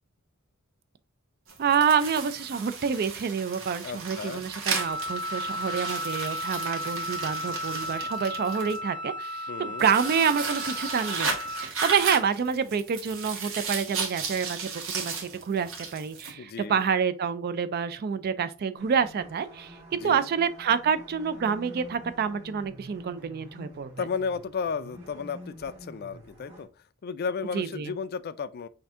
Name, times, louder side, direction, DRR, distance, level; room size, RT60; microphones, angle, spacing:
sound 1, 1.5-8.8 9.8-16.3, right 4 dB, 65° right, 1.3 m, -34 dB
voice 1, 1.6-23.9 27.5-27.9, right 6 dB, 45° right, 0.3 m, -28 dB
voice 2, 3.8-4.5 9.5-9.9 16.4-16.8 19.9-20.3 24.0-26.7 27.0-28.7, left 5 dB, 45° left, 0.4 m, -33 dB
Wind instrument woodwind instrument, 4.8-11.7, left 1 dB, 5° right, 0.6 m, -34 dB
sound 2, 18.8-26.7, equal, 30° right, 2.0 m, -47 dB
5.7 x 2.7 x 3.5 m
head